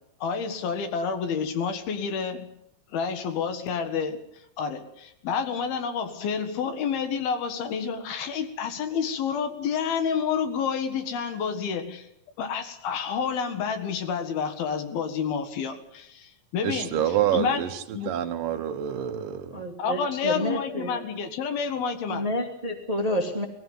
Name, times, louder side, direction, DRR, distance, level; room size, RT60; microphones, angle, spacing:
voice 1, 0.2-2.5 2.9-4.2 4.6-12.1 12.4-17.7 17.9-18.2 19.8-22.3, left 6 dB, 80° left, 3.5 m, -29 dB
voice 2, 16.6-17.7 18.1-19.6, right 11 dB, 70° right, 2.6 m, -27 dB
voice 3, 19.5-20.9 22.1-23.4, equal, 20° right, 1.1 m, -29 dB
20.0 x 15.0 x 9.4 m
omnidirectional pair, 4.3 m